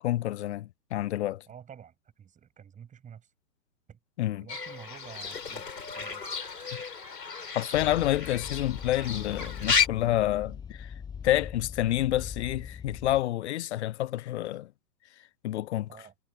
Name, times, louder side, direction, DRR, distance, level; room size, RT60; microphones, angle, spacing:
voice 1, 0.0-1.4 4.2-4.5 7.5-10.9 11.2-14.7 15.4-15.9, left 14 dB, 45° left, 1.0 m, -28 dB
voice 2, 1.5-3.3 3.9-4.0 4.3-5.7 6.0-6.2 15.9-16.1, right 8 dB, 15° right, 7.5 m, -49 dB
Fowl / Bird, 4.5-9.9, left 6 dB, 80° left, 5.0 m, -32 dB
sound 1, 7.7-13.2, left 7 dB, 10° left, 1.2 m, -41 dB
figure-of-eight pair, 125°, 49 cm